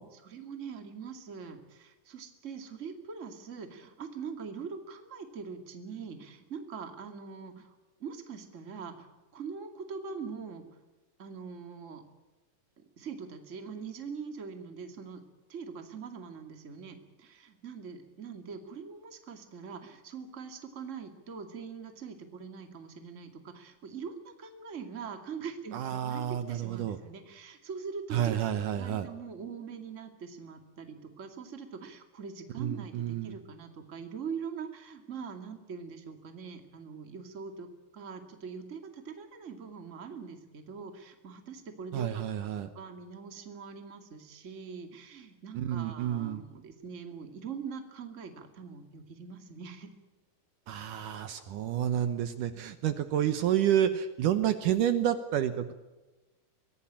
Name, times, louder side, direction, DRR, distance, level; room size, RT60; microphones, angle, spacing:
voice 1, 0.1-7.7 8.0-9.1 9.3-10.6 11.2-12.0 13.0-15.2 15.5-28.4 28.7-37.7 37.9-49.9, right 5 dB, 25° right, 6 dB, 2.1 m, -43 dB
voice 2, 25.7-27.0 28.1-29.1 32.6-33.3 41.9-42.7 45.5-46.4 50.7-55.7, right 10 dB, 70° right, 10 dB, 2.4 m, -29 dB
23.5 x 18.0 x 8.9 m, 1.1 s
omnidirectional pair, 4.1 m